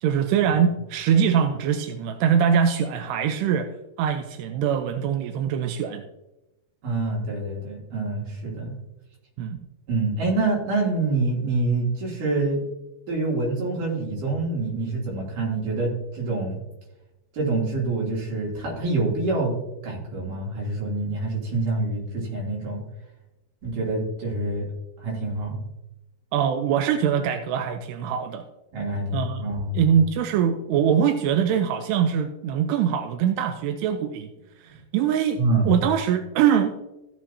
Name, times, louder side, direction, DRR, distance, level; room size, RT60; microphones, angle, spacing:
voice 1, 0.0-3.7 4.0-6.0 9.4-9.6 26.3-28.4 29.1-29.4 29.7-34.3 34.9-35.4 35.7-36.9, right 8 dB, 85° right, 6 dB, 2.7 m, -23 dB
voice 2, 6.8-8.7 9.9-12.6 13.1-16.6 17.3-19.5 19.8-22.8 23.6-24.7 25.0-25.6 28.7-29.8 34.7-34.8 35.4-35.7, right 2 dB, 55° right, -4 dB, 4.4 m, -26 dB
15.0 x 7.6 x 2.8 m, 0.96 s
omnidirectional pair, 4.8 m